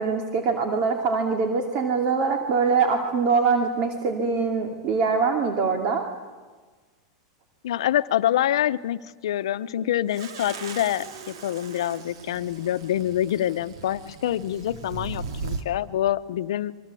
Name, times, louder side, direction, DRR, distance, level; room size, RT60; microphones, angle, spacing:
voice 1, 0.0-6.0, right 5 dB, 45° right, 4 dB, 2.6 m, -23 dB
voice 2, 7.6-16.7, left 12 dB, 80° left, 14 dB, 0.9 m, -26 dB
sound 1, 10.1-15.6, right 4 dB, 75° right, 2.7 m, -38 dB
26.0 x 23.0 x 8.4 m, 1.4 s
supercardioid pair, 135°, 3 cm